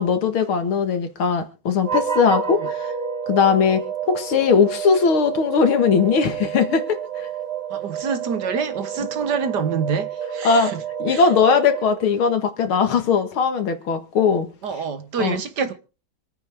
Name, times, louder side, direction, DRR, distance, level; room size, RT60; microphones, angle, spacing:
voice 1, 0.0-2.9 3.3-7.0 10.4-10.7 11.0-14.5 15.2-15.4, left 6 dB, 80° left, 2.5 m, -19 dB
sound 1, 1.8-12.4, right 8 dB, 80° right, 3.5 m, -30 dB
voice 2, 7.7-10.8 11.1-11.2 14.6-15.7, right 6 dB, 60° right, 1.6 m, -26 dB
26.0 x 9.0 x 3.5 m
omnidirectional pair, 2.3 m